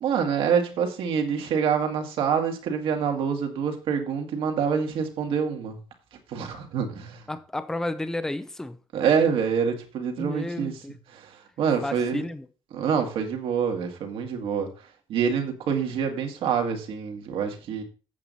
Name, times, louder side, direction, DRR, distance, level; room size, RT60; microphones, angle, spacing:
voice 1, 0.0-5.8 6.3-7.2 8.9-10.7 11.1-12.2 12.7-14.7 15.1-17.8, right 7 dB, 70° right, 2.0 m, -26 dB
voice 2, 7.3-8.8 10.2-10.9 11.8-12.5, left 1 dB, 5° left, 0.5 m, -32 dB
8.5 x 7.8 x 4.0 m
cardioid pair, 160°, 9 cm